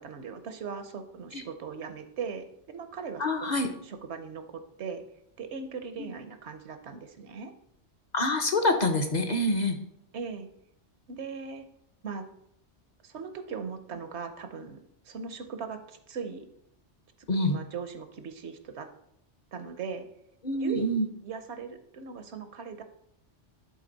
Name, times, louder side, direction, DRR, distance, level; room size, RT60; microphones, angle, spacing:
voice 1, 0.0-5.0 5.4-7.5 10.1-10.5 11.1-11.7 12.0-12.3 13.0-14.8 15.0-16.5 17.4-18.9 19.5-20.1 20.6-20.9 21.2-22.8, right 5 dB, 70° right, 8 dB, 1.1 m, -39 dB
voice 2, 3.2-3.7 6.0-6.1 8.1-9.8 17.3-17.6 20.4-21.1, left 1 dB, 40° left, 4 dB, 0.8 m, -26 dB
11.5 x 3.9 x 3.9 m, 0.74 s
omnidirectional pair, 1.2 m